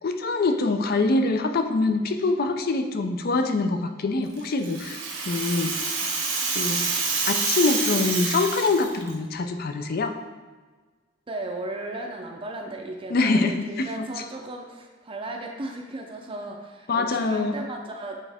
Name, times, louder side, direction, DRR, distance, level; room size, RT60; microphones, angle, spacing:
voice 1, 0.0-6.1 6.5-6.9 7.3-10.2 13.1-14.1 16.9-17.5, left 3 dB, 50° left, 7 dB, 0.4 m, -24 dB
Rattle (instrument), 4.4-9.1, right 4 dB, 85° right, 1.1 m, -27 dB
voice 2, 11.3-18.2, right 2 dB, 25° right, 1 dB, 0.5 m, -36 dB
8.4 x 3.6 x 3.4 m, 1.4 s
head